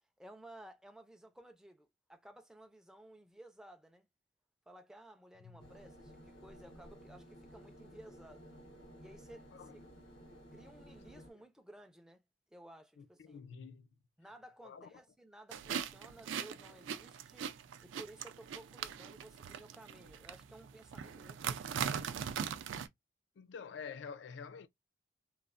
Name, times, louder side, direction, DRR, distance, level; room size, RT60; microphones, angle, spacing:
voice 1, 0.2-4.1 4.7-8.5 9.0-9.7 10.5-12.2 12.5-13.4 14.2-17.5 17.8-22.1, right 1 dB, 5° right, 0.4 m, -56 dB
sound 1, 5.6-11.3, equal, 90° left, 1.1 m, -55 dB
voice 2, 13.0-13.9 14.6-15.0 23.4-24.7, left 6 dB, 65° left, 0.3 m, -48 dB
sound 2, 15.5-22.9, right 7 dB, 75° right, 0.4 m, -41 dB
3.1 x 2.0 x 2.3 m
head